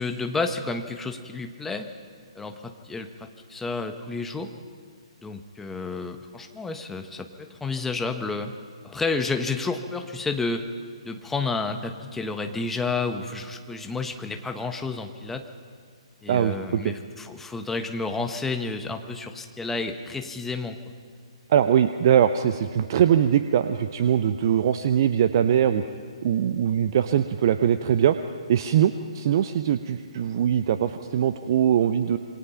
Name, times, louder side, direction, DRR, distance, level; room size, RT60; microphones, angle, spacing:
voice 1, 0.0-1.9 2.3-4.5 5.2-8.5 8.8-10.6 11.0-15.4 16.2-20.8, left 3 dB, 5° left, 6 dB, 1.3 m, -30 dB
voice 2, 16.3-16.8 21.5-25.8 26.2-28.1 28.5-32.2, right 9 dB, 40° right, 10 dB, 0.8 m, -22 dB
27.5 x 24.0 x 5.8 m, 2.1 s
figure-of-eight pair, 130°, 3 cm